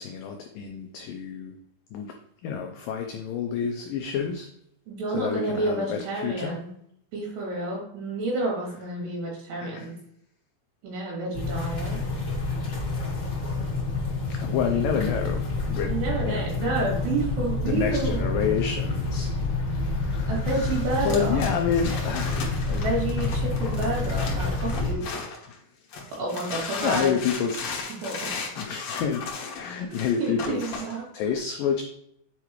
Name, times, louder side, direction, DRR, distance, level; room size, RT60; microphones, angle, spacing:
voice 1, 0.0-1.5 1.9-2.1 2.4-4.5 5.1-6.6 9.6-9.9 12.3-12.5 14.3-15.9 16.2-16.4 17.7-20.8 21.0-22.8 26.8-27.6 28.6-30.6 31.1-31.8, left 7 dB, 85° left, 3 dB, 1.9 m, -29 dB
voice 2, 4.9-6.7 7.1-9.9 10.8-12.0 15.9-18.6 20.3-21.5 22.7-25.1 26.1-27.2 27.9-28.5 29.9-31.0, right 2 dB, 80° right, -4 dB, 4.8 m, -30 dB
sound 1, 11.3-24.9, left 3 dB, 45° left, 1.1 m, -28 dB
sound 2, 21.0-25.5 25.9-31.0, left 4 dB, 70° left, 1.7 m, -35 dB
8.3 x 4.7 x 3.0 m, 0.71 s
omnidirectional pair, 4.8 m